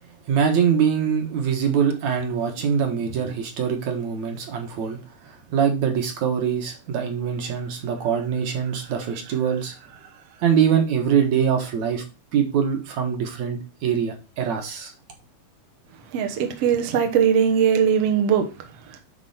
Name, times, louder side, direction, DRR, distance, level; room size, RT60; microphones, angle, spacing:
voice 1, 0.3-5.0 5.2-9.7 10.4-12.0 12.3-14.9, right 7 dB, 60° right, 2.1 m, -23 dB
voice 2, 16.1-18.4 18.9-19.0, right 8 dB, 80° right, 1.4 m, -20 dB
10.0 x 4.2 x 4.2 m
omnidirectional pair, 4.7 m